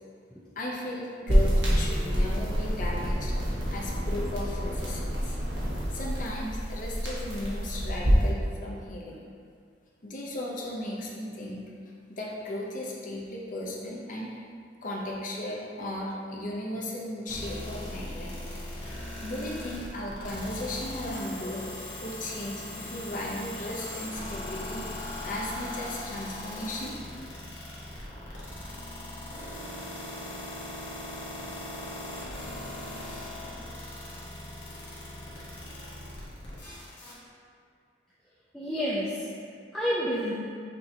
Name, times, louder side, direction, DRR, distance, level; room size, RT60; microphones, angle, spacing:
voice 1, 0.5-3.3 3.7-5.4 5.9-9.2 10.0-11.7 12.1-14.3 14.8-18.4 19.2-24.8 25.2-27.0, left 1 dB, 45° left, -3 dB, 0.6 m, -36 dB
sound 1, 1.3-8.3, equal, 75° right, 1.1 m, -27 dB
voice 2, 1.7-2.3 2.8-2.9 32.8-32.9 33.6-33.7 38.5-39.2 39.7-40.3, equal, 5° left, -9 dB, 0.4 m, -31 dB
sound 2, 17.3-37.1, left 1 dB, 85° left, 1.0 m, -39 dB
6.2 x 2.9 x 2.7 m, 2.2 s
head